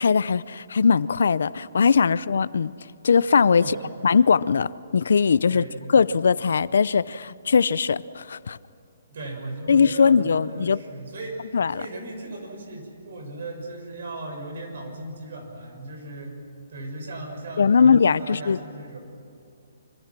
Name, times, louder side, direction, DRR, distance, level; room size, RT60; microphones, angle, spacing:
voice 1, 0.0-2.7 3.0-3.8 4.0-5.6 5.9-8.6 9.7-10.8 11.5-11.8 17.6-18.6, left 6 dB, 75° left, 18 dB, 0.6 m, -20 dB
voice 2, 3.6-3.9 5.5-5.9 9.1-16.4 16.7-19.0, right 2 dB, 55° right, 2 dB, 6.6 m, -37 dB
25.5 x 24.5 x 6.1 m, 2.5 s
hypercardioid pair, 170°, 0 cm